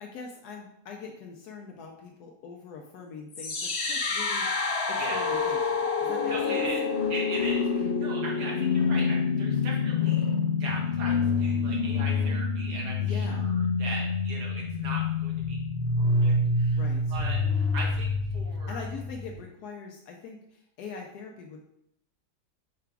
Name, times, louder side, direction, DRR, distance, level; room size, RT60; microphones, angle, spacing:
voice 1, 0.0-6.7 13.0-13.5 16.7-17.2 18.7-21.6, left 5 dB, 75° left, 1 dB, 1.1 m, -42 dB
sound 1, 3.3-19.3, left 4 dB, 60° left, 0.7 m, -27 dB
voice 2, 6.2-6.8 7.1-10.3 10.6-15.6 16.0-16.8 17.1-18.8, right 2 dB, 70° right, -3 dB, 1.7 m, -39 dB
4.8 x 2.3 x 4.6 m, 0.76 s
omnidirectional pair, 1.8 m